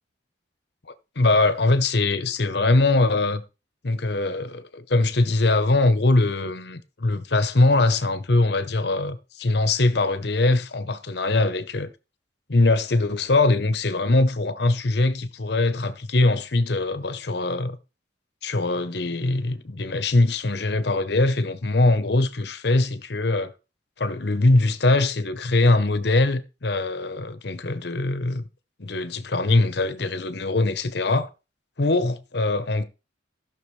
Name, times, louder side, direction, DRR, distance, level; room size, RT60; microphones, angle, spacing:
voice 1, 0.9-3.4 3.8-11.9 12.5-17.8 18.4-23.5 24.0-28.5 28.8-31.3 31.8-32.8, left 2 dB, 60° left, 0.9 m, -22 dB
16.0 x 6.1 x 3.2 m
head